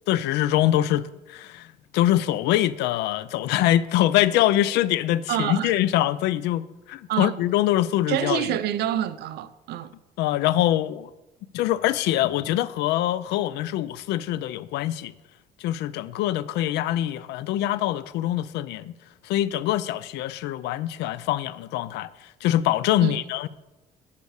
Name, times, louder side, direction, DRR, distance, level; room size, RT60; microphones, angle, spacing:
voice 1, 0.1-1.7 1.9-8.6 10.2-11.1 11.5-15.1 15.6-18.9 19.2-22.1 22.4-23.5, left 13 dB, 85° left, 0.5 m, -24 dB
voice 2, 5.3-5.7 7.1-7.4 8.1-9.9 23.0-23.2, right 12 dB, 75° right, 0.7 m, -27 dB
8.3 x 8.2 x 6.5 m
cardioid pair, 110°, 17 cm